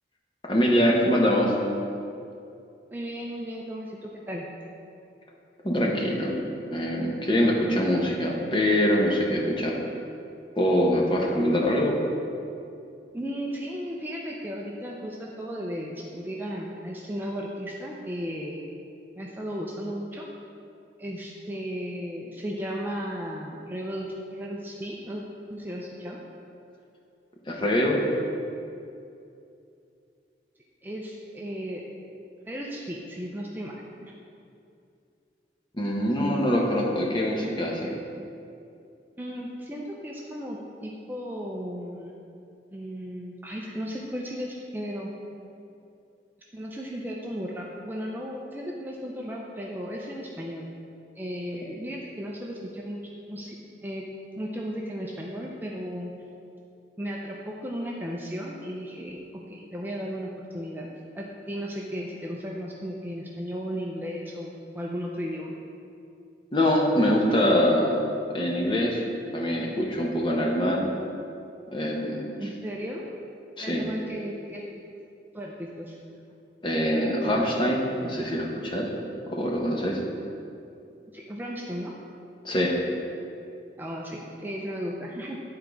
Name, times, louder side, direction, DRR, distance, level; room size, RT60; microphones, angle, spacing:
voice 1, 0.4-1.5 5.6-6.3 6.7-9.7 10.6-12.0 27.5-28.0 35.8-37.9 66.5-68.0 68.3-69.0 69.3-70.8 71.7-72.5 73.6-73.9 76.6-78.9 79.3-80.0 82.4-82.8, equal, 25° left, -1 dB, 0.8 m, -24 dB
voice 2, 2.9-4.5 13.1-18.6 19.2-20.3 21.0-25.2 25.5-26.2 30.8-31.8 32.4-33.8 34.0-34.1 39.2-42.1 42.7-45.1 46.5-50.7 51.2-53.0 53.3-53.6 53.8-54.0 54.4-56.1 57.0-60.9 61.1-65.5 72.4-73.0 73.6-74.6 75.3-76.0 81.1-82.0 83.8-85.4, equal, 10° right, -2 dB, 0.5 m, -35 dB
10.0 x 3.8 x 4.6 m, 2.6 s
head